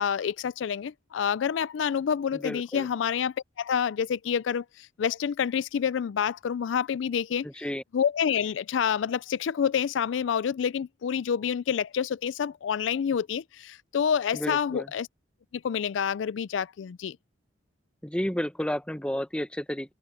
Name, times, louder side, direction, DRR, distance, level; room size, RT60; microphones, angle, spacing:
voice 1, 0.0-7.5 7.9-15.1 15.5-17.2, left 7 dB, 85° left, 0.4 m, -28 dB
voice 2, 2.3-2.9 7.4-7.8 14.3-14.9 18.0-19.9, equal, 5° left, 0.9 m, -31 dB
head